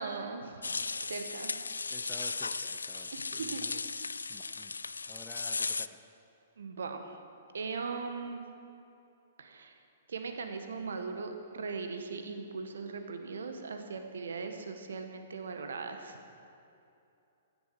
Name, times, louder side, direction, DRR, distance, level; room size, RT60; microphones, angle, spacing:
voice 1, 0.0-1.6 3.1-3.6 6.6-7.2 7.5-8.4 9.4-9.7 10.1-16.2, right 4 dB, 65° right, 6 dB, 1.3 m, -39 dB
sound 1, 0.6-5.9, left 4 dB, 75° left, 0.3 m, -36 dB
voice 2, 1.9-4.7 5.0-5.9, left 2 dB, 10° left, 2 dB, 0.8 m, -52 dB
15.5 x 11.0 x 4.8 m, 2.7 s
figure-of-eight pair, 115°, 0 cm